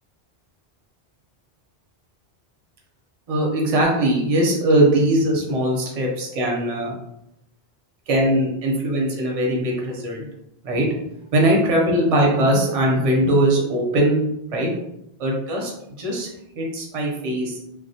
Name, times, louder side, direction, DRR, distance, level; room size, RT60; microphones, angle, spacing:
voice 1, 3.3-6.9 8.1-10.3 10.6-10.9 11.3-14.2 14.5-14.7 15.2-15.7 16.0-16.3 16.6-17.6, right 1 dB, 45° right, -1 dB, 0.6 m, -20 dB
2.2 x 2.1 x 2.7 m, 0.81 s
omnidirectional pair, 1.0 m